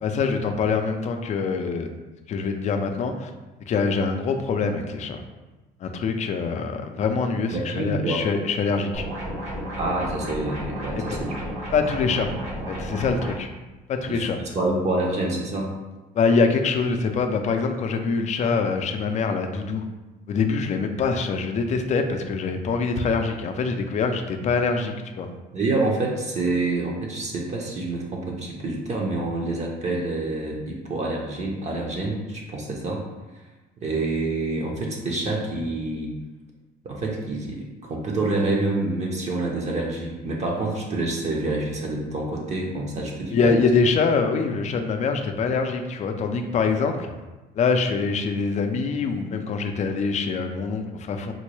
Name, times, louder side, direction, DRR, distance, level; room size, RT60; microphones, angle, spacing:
voice 1, 0.0-1.9 2.3-3.3 3.6-5.2 5.8-9.1 10.9-11.0 11.7-12.3 12.7-13.5 13.9-14.4 16.1-19.9 20.3-25.3 43.3-47.1 47.6-51.3, left 4 dB, 45° left, 5 dB, 0.4 m, -24 dB
voice 2, 7.5-8.2 9.8-11.4 14.1-14.3 14.5-15.7 25.5-33.0 33.8-36.1 36.8-43.5, right 2 dB, 40° right, -1 dB, 0.6 m, -27 dB
sound 1, 8.9-13.3, equal, 70° right, 1.1 m, -32 dB
3.8 x 2.2 x 3.1 m, 1.1 s
cardioid pair, 110°, 17 cm